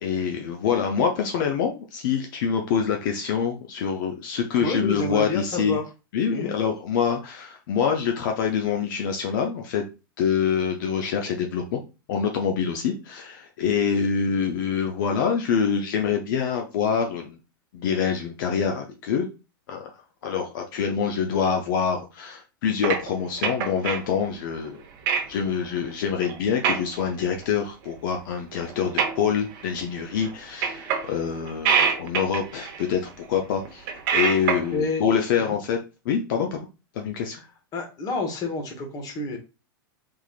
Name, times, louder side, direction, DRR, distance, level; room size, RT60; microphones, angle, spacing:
voice 1, 0.0-5.8 6.1-9.8 10.2-11.8 12.1-17.4 17.7-19.3 19.7-24.8 25.3-35.8 36.0-36.7 36.9-37.4, left 7 dB, 60° left, 3 dB, 0.6 m, -25 dB
voice 2, 4.6-5.8 6.3-6.5 34.7-35.1 35.4-35.6 37.7-39.4, left 3 dB, 30° left, 3 dB, 1.2 m, -29 dB
sound 1, 22.8-24.1 24.7-24.8 25.1-25.2 25.6-25.9 26.2-26.4 26.6-26.8 27.3-27.4 28.1-28.2 28.5-29.7 29.9-30.3 30.6-31.2 31.5-33.1 33.6-34.7, right 6 dB, 50° right, 0.8 m, -25 dB
3.7 x 3.2 x 2.4 m, 0.30 s
hypercardioid pair, 120°, 12 cm